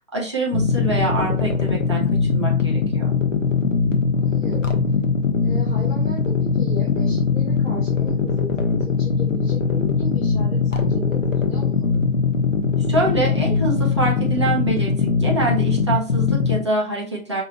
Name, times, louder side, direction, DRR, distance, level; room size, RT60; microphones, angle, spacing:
voice 1, 0.1-3.1 12.9-17.4, right 2 dB, 20° right, -3 dB, 0.6 m, -25 dB
sound 1, 0.5-16.6, left 5 dB, 55° left, 0.9 m, -21 dB
voice 2, 4.1-4.8 5.4-6.2 6.5-8.5 8.8-12.0, left 1 dB, 10° left, -11 dB, 0.9 m, -36 dB
5.4 x 2.7 x 2.9 m, 0.37 s
figure-of-eight pair, 145°, 44 cm